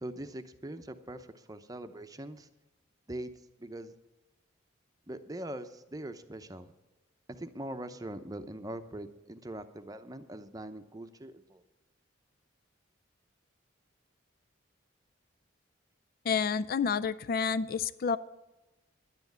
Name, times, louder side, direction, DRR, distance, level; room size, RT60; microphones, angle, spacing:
voice 1, 0.0-2.5 3.1-3.3 3.6-3.9 5.1-6.7 7.4-11.6, right 1 dB, 20° right, 9 dB, 0.7 m, -42 dB
voice 2, 16.3-18.2, left 6 dB, 50° left, 15 dB, 0.4 m, -29 dB
11.0 x 9.6 x 7.9 m, 1.0 s
head